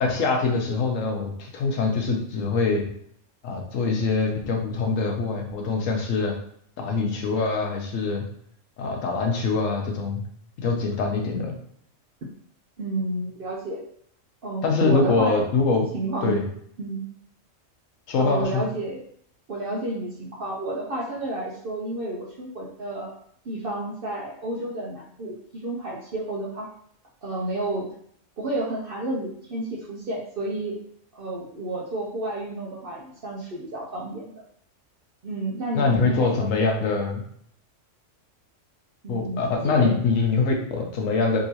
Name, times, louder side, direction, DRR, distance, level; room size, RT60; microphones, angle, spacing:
voice 1, 0.0-2.9 3.4-6.3 6.8-8.3 8.8-10.2 10.6-11.5 14.6-15.9 16.2-16.4 18.1-18.6 35.7-37.2 39.1-41.4, left 4 dB, 85° left, 2 dB, 1.1 m, -24 dB
voice 2, 12.8-13.8 14.4-15.4 15.9-16.4 16.8-17.0 18.1-19.0 19.5-23.1 23.4-26.7 27.2-27.9 28.4-30.8 31.1-34.3 35.2-36.5 39.0-40.0, right 2 dB, 55° right, -3 dB, 0.7 m, -31 dB
3.7 x 2.8 x 2.8 m, 0.65 s
omnidirectional pair, 1.3 m